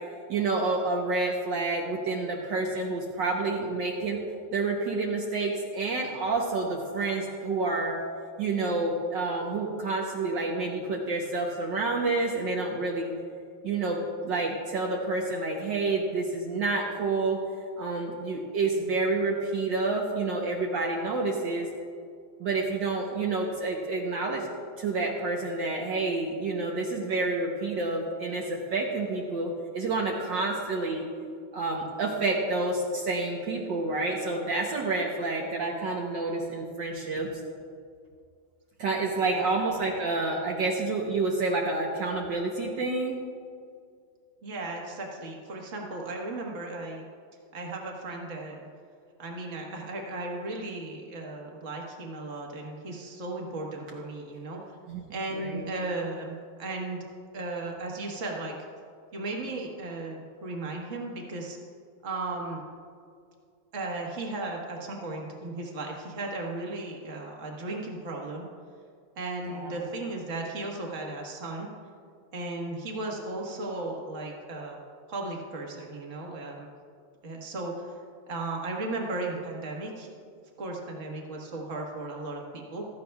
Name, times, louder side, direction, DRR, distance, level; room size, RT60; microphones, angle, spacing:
voice 1, 0.3-4.2 4.5-8.0 8.4-13.1 13.6-17.4 17.8-21.7 22.4-24.5 24.8-31.1 31.5-37.3 38.8-43.2 54.9-55.0 55.3-55.6 69.5-69.8, right 3 dB, 65° right, -1 dB, 1.6 m, -29 dB
voice 2, 44.4-47.0 47.5-48.7 49.2-54.7 55.1-57.0 57.3-58.7 59.1-61.6 62.0-62.6 63.7-68.5 69.1-71.7 72.3-74.8 75.1-76.7 77.2-78.0 78.3-80.1 80.6-82.9, right 2 dB, 40° right, 0 dB, 1.7 m, -35 dB
16.0 x 13.5 x 2.3 m, 2.3 s
omnidirectional pair, 2.2 m